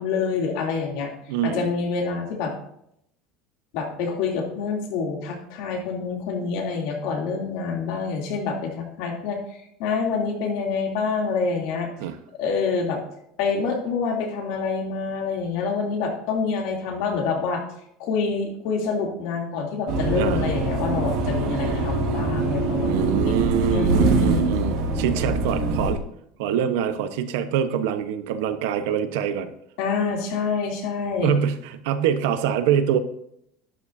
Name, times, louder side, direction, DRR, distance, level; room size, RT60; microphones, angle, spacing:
voice 1, 0.0-1.1 1.4-2.5 3.7-9.4 9.8-11.9 12.4-13.0 13.4-17.6 18.0-23.4 23.7-24.5 29.8-31.3, left 4 dB, 60° left, 1 dB, 2.9 m, -26 dB
voice 2, 1.3-1.7 12.0-12.1 20.1-20.4 22.8-26.0 26.4-29.5 31.2-33.0, right 9 dB, 75° right, 10 dB, 1.1 m, -25 dB
sound 1, 19.9-25.9, right 3 dB, 55° right, 2.3 m, -23 dB
12.0 x 11.0 x 2.7 m, 0.74 s
cardioid pair, 170°, 0 cm